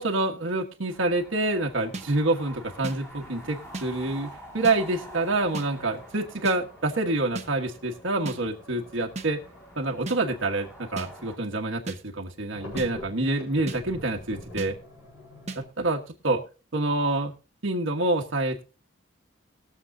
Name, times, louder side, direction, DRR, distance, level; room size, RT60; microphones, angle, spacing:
voice 1, 0.0-9.4 9.8-14.8 15.5-16.4 16.7-17.3 17.6-18.6, right 2 dB, 70° right, 1 dB, 1.4 m, -27 dB
sound 1, 0.9-11.4, equal, 15° left, 2.6 m, -48 dB
sound 2, 1.9-2.1 2.8-3.0 3.7-3.9 4.6-4.8 5.5-5.7 6.5-6.6 7.4-7.5 8.3-8.4 9.2-9.3 10.1-10.2 11.0-11.1 11.9-12.0 12.8-12.9 13.7-13.8 14.6-14.7 15.5-15.6, right 2 dB, 35° right, 1.0 m, -34 dB
sound 3, 2.7-2.8 5.0-15.7, left 1 dB, 70° left, 6.2 m, -47 dB
21.0 x 7.2 x 2.7 m, 0.33 s
head